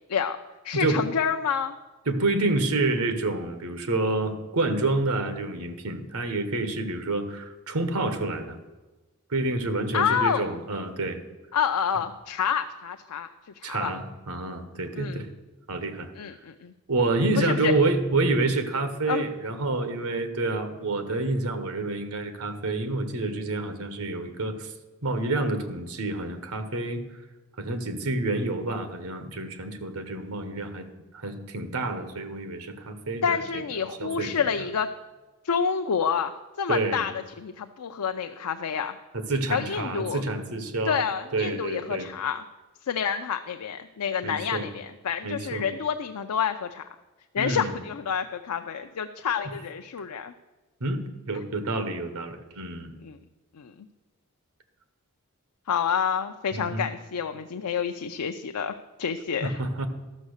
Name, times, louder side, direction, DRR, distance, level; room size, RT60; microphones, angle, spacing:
voice 1, 0.6-1.7 9.9-10.5 11.5-13.3 13.7-13.9 15.0-15.2 16.2-16.7 17.4-17.7 19.1-19.3 33.2-34.9 35.4-36.3 36.6-37.1 37.4-39.0 39.5-40.2 40.8-42.4 42.8-46.8 47.3-50.3 51.3-51.4 53.0-53.2 53.6-53.9 55.7-59.6, left 7 dB, 90° left, 7 dB, 0.5 m, -28 dB
voice 2, 2.1-8.6 9.3-11.2 13.6-15.3 15.7-16.1 16.9-24.7 25.0-27.0 27.6-30.8 31.1-33.4 34.0-34.5 36.7-37.1 39.1-41.0 41.3-42.1 44.2-44.7 45.2-45.7 47.4-47.8 50.8-52.9 56.5-56.9 59.4-59.9, right 2 dB, 75° right, 9 dB, 1.2 m, -28 dB
12.5 x 6.3 x 6.5 m, 1.2 s
head